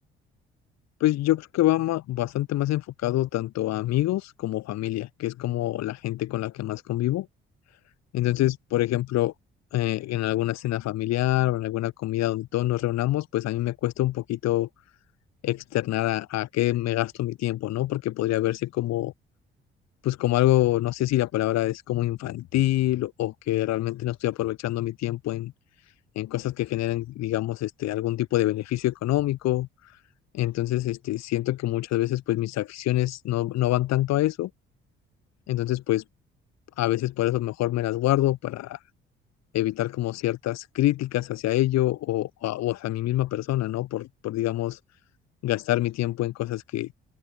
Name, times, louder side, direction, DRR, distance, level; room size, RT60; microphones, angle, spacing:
voice 1, 1.0-7.3 8.1-9.3 9.7-14.7 15.4-19.1 20.0-25.5 26.2-29.7 30.3-34.5 35.5-36.0 36.8-38.8 39.5-44.8 45.4-46.9, left 15 dB, 60° left, 3.4 m, -26 dB
open air
figure-of-eight pair, 45°, 31 cm